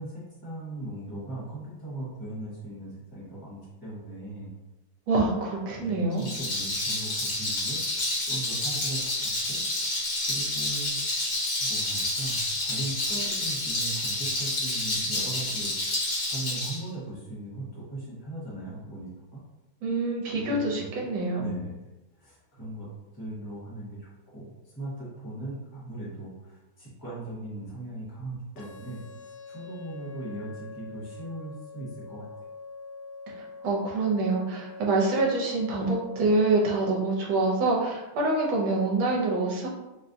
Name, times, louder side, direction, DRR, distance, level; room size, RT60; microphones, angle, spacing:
voice 1, 0.0-4.5 5.8-7.8 8.3-9.6 10.2-11.0 11.6-15.7 16.3-19.4 20.3-20.8 21.4-21.7 22.2-32.3, right 2 dB, 15° left, -8 dB, 1.0 m, -39 dB
voice 2, 5.1-6.2 19.8-21.5 33.6-39.7, right 2 dB, 75° right, -2 dB, 1.5 m, -26 dB
Rattle, 6.1-16.8, left 2 dB, 50° left, 1.4 m, -29 dB
sound 1, 28.6-36.6, left 4 dB, 70° left, 1.1 m, -44 dB
4.2 x 2.2 x 2.6 m, 1.0 s
omnidirectional pair, 2.3 m